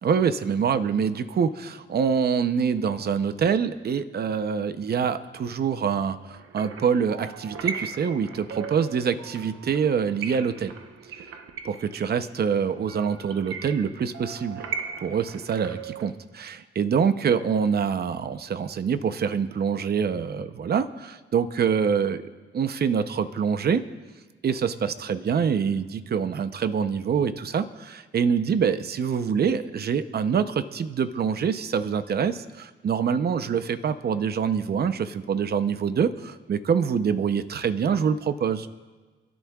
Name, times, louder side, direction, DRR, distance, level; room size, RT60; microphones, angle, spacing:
voice 1, 0.0-10.7 11.7-14.7 15.0-22.2 22.5-23.8 24.4-38.7, right 6 dB, 50° right, 10 dB, 0.7 m, -25 dB
sound 1, 6.3-16.1, right 6 dB, 85° right, 0.9 m, -38 dB
27.0 x 13.0 x 2.4 m, 1.3 s
cardioid pair, 110°, 21 cm